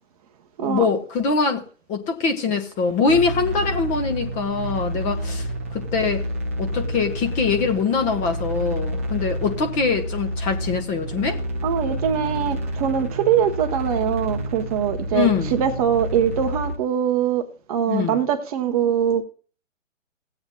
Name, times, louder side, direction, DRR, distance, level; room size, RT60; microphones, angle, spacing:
voice 1, 0.6-1.6 1.9-6.2 6.6-11.4 15.1-15.5 17.9-18.2, left 5 dB, 20° left, 0.9 m, -23 dB
sound 1, 3.1-16.8, equal, 10° right, 0.3 m, -29 dB
voice 2, 11.6-19.2, right 8 dB, 30° right, 0.8 m, -22 dB
18.5 x 7.9 x 2.2 m
figure-of-eight pair, 130°, 39 cm